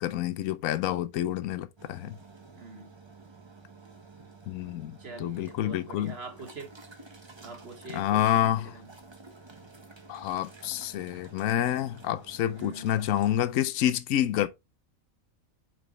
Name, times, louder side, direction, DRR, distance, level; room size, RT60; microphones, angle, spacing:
voice 1, 0.0-2.2 4.5-6.2 7.9-8.7 10.1-14.5, left 12 dB, 75° left, 1.0 m, -28 dB
sound 1, 1.8-13.3, right 3 dB, 20° right, 0.9 m, -51 dB
voice 2, 2.5-2.9 5.0-6.7 7.4-8.9 12.5-12.9, right 3 dB, 45° right, 1.8 m, -44 dB
5.8 x 5.3 x 3.0 m
omnidirectional pair, 1.5 m